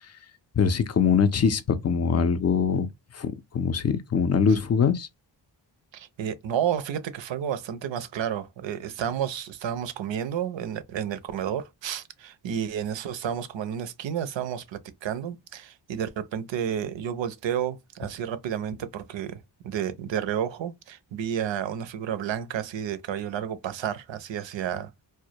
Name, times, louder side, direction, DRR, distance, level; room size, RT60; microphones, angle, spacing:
voice 1, 0.6-2.9 3.1-5.1, left 6 dB, 35° left, 0.4 m, -23 dB
voice 2, 5.9-24.9, right 9 dB, 70° right, 0.5 m, -31 dB
2.2 x 2.1 x 2.7 m
cardioid pair, 70°, 47 cm